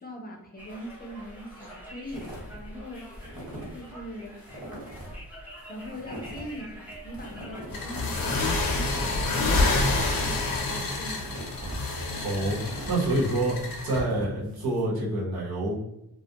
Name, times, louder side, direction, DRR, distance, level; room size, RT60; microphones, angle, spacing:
voice 1, 0.0-3.1 3.7-4.4 5.7-11.3, equal, 25° left, 1 dB, 0.5 m, -41 dB
Conversation, 0.6-9.2, equal, 5° right, 0.7 m, -45 dB
sound 1, 2.1-2.6 2.9-3.8 4.1-4.2 4.4-5.2 5.6-10.5 10.9-14.8, equal, 25° right, 1.1 m, -42 dB
sound 2, 7.7-14.0, left 2 dB, 70° left, 0.7 m, -28 dB
voice 2, 12.2-13.6 13.8-15.8, right 1 dB, 80° right, -6 dB, 1.1 m, -27 dB
2.3 x 2.1 x 2.8 m, 0.83 s
wide cardioid pair, 110°, 36 cm